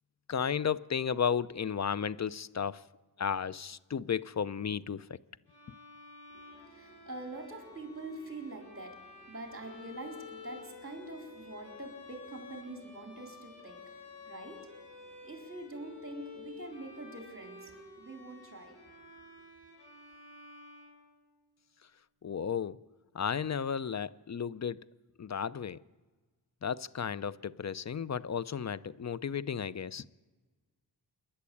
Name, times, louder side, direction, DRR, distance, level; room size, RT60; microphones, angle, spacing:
voice 1, 0.3-2.9 3.2-5.1 22.2-22.8 23.1-24.8 25.2-25.8 26.6-30.1, left 7 dB, 40° left, 0.6 m, -33 dB
Bowed string instrument, 5.5-21.4, left 4 dB, 70° left, 7.4 m, -52 dB
voice 2, 6.3-19.1, right 2 dB, 30° right, 4.1 m, -45 dB
27.5 x 11.5 x 8.5 m
wide cardioid pair, 105°, 43 cm